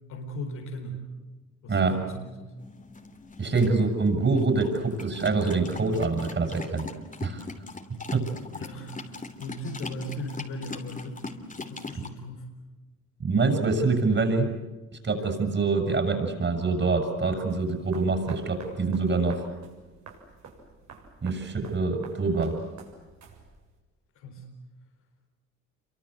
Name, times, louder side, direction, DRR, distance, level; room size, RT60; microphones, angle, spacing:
voice 1, 0.1-1.0 1.6-2.5 8.3-11.3 11.6-12.5 15.1-15.4 24.1-24.4, left 1 dB, 85° left, -2 dB, 4.7 m, -38 dB
voice 2, 1.7-2.0 3.4-6.8 7.2-7.4 8.1-8.3 13.2-14.5 15.0-19.5 21.2-22.5, right 3 dB, 40° right, 6 dB, 7.5 m, -25 dB
sound 1, 2.6-12.1, left 3 dB, 25° left, 3.1 m, -41 dB
sound 2, 17.5-23.8, right 4 dB, 70° right, 7.1 m, -48 dB
28.5 x 24.5 x 8.2 m, 1.2 s
cardioid pair, 90°, 30 cm